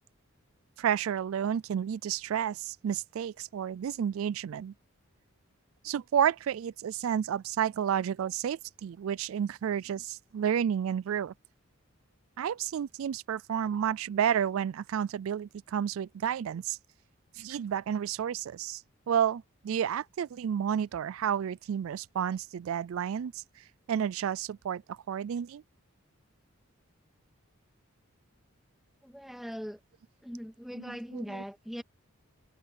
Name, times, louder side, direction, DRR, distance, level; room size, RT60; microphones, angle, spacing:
voice 1, 0.8-4.7 5.8-11.3 12.4-16.8 17.3-25.6 30.7-31.4, right 8 dB, 75° right, 0.3 m, -31 dB
voice 2, 29.0-29.8 30.2-31.8, equal, ahead, 2.0 m, -40 dB
open air
head